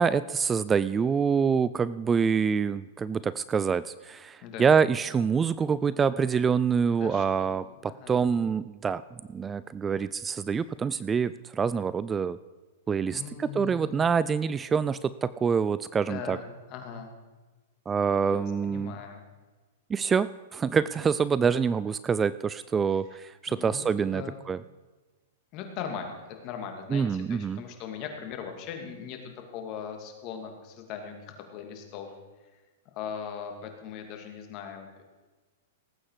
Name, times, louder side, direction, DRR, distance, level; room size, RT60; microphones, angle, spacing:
voice 1, 0.0-9.0 9.3-12.4 12.9-16.4 17.9-19.0 19.9-24.6 26.9-27.6, right 6 dB, 20° right, 17 dB, 0.3 m, -26 dB
voice 2, 7.0-8.1 13.1-14.0 16.1-17.1 18.3-19.2 23.5-24.4 25.5-32.1 32.9-35.0, left 7 dB, 45° left, 4 dB, 2.5 m, -40 dB
18.5 x 8.6 x 4.8 m, 1.3 s
hypercardioid pair, 120°, 0 cm